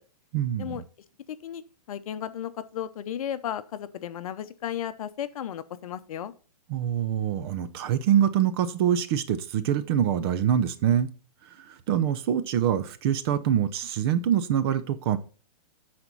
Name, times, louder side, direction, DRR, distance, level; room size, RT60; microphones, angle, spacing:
voice 1, 0.3-0.8 6.7-11.1 11.9-15.2, right 9 dB, 35° right, 0.7 m, -25 dB
voice 2, 1.3-1.6 1.9-6.3, left 10 dB, 55° left, 0.8 m, -34 dB
10.5 x 4.4 x 5.5 m
hypercardioid pair, 150°, 21 cm